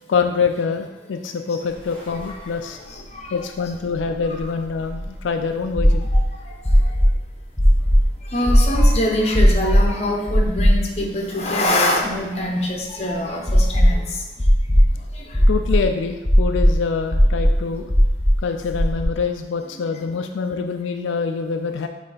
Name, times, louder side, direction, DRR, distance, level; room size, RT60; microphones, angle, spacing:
voice 1, 0.1-2.8 3.3-6.1 15.5-17.9 18.4-21.9, left 5 dB, 85° left, 6 dB, 0.4 m, -25 dB
sound 1, 2.0-2.1 2.3-2.4 3.9-5.2 5.8-6.2 6.6-7.1 7.6-8.0 8.5-8.9 9.3-9.8 10.3-11.1 11.4-11.5 13.5-14.0 14.4-14.9 15.3-15.8 16.2-16.7 17.1-17.5 17.9-18.3 18.7-19.0, equal, 10° left, 1.1 m, -15 dB
voice 2, 2.1-2.4 2.9-3.4 4.4-4.5 6.1-6.2 8.3-14.2 15.1-15.4, left 1 dB, 35° left, 0 dB, 0.9 m, -24 dB
7.5 x 3.2 x 4.0 m, 1.1 s
head